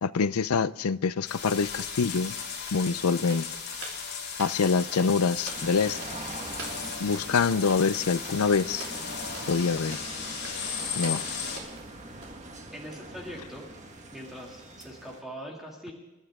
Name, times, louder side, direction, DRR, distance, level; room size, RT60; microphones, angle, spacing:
voice 1, 0.0-2.3 2.7-3.4 4.4-6.0 7.0-8.8 9.5-10.0 11.0-11.2, left 5 dB, 85° left, 0.5 m, -25 dB
sound 1, 1.2-11.6, left 6 dB, 50° left, 3.4 m, -36 dB
sound 2, 3.2-13.0, right 3 dB, 65° right, 4.4 m, -48 dB
sound 3, 5.5-15.2, right 2 dB, 35° right, 1.6 m, -42 dB
voice 2, 12.7-13.6 14.1-15.9, equal, ahead, 2.5 m, -42 dB
28.0 x 12.5 x 3.7 m
head